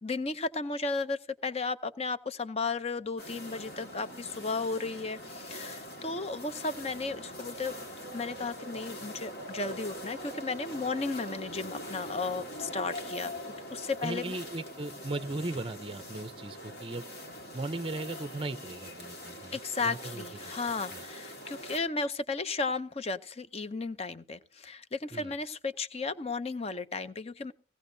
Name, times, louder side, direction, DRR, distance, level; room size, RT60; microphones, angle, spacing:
voice 1, 0.0-7.8 8.1-13.3 13.7-14.4 19.5-27.5, left 3 dB, 30° left, 0.6 m, -34 dB
sound 1, 3.2-21.8, equal, 55° left, 2.0 m, -43 dB
voice 2, 14.0-17.1 17.5-19.6 19.8-20.6 20.9-21.0 25.1-25.3, right 2 dB, 25° right, 0.6 m, -37 dB
17.0 x 16.5 x 2.7 m
head